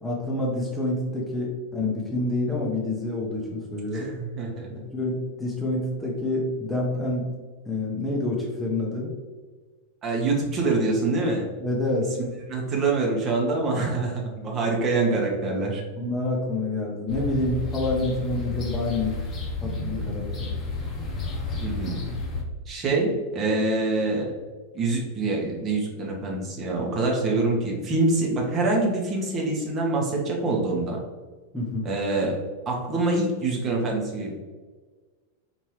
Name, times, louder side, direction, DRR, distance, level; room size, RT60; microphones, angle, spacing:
voice 1, 0.0-4.1 4.7-7.3 7.6-9.1 11.6-12.1 16.0-19.2 19.6-20.5 31.5-31.9, left 2 dB, 5° left, -4 dB, 0.8 m, -28 dB
voice 2, 3.9-4.7 10.0-11.5 12.5-15.8 21.6-22.0 22.7-24.3 24.7-31.0 31.8-32.4 32.7-34.3, right 3 dB, 30° right, -1 dB, 1.0 m, -25 dB
sound 1, 17.1-22.4, left 3 dB, 30° left, 0.9 m, -31 dB
4.5 x 2.9 x 3.2 m, 1.4 s
figure-of-eight pair, 90°, 0 cm